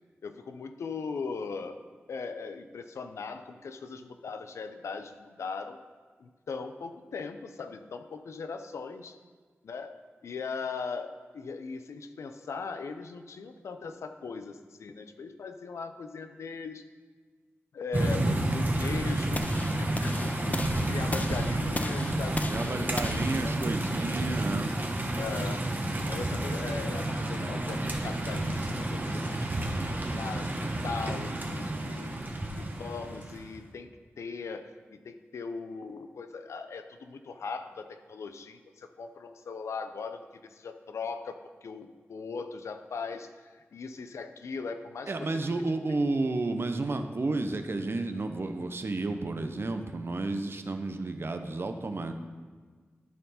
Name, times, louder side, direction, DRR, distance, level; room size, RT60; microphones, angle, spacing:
voice 1, 0.2-1.8 2.1-5.8 6.2-9.2 9.6-10.0 10.2-16.8 17.7-19.4 19.8-23.0 23.4-23.7 25.2-25.7 26.0-29.4 29.9-30.5 30.8-32.1 32.5-33.9 34.2-45.1, left 4 dB, 90° left, 8 dB, 0.5 m, -39 dB
sound 1, 17.9-33.5, right 1 dB, 40° right, 1.1 m, -30 dB
sound 2, 19.3-25.4, left 2 dB, 35° left, 0.5 m, -38 dB
voice 2, 22.5-24.8 45.1-52.1, right 2 dB, 55° right, 7 dB, 0.7 m, -31 dB
12.0 x 4.5 x 4.1 m, 1.5 s
cardioid pair, 45°, 5 cm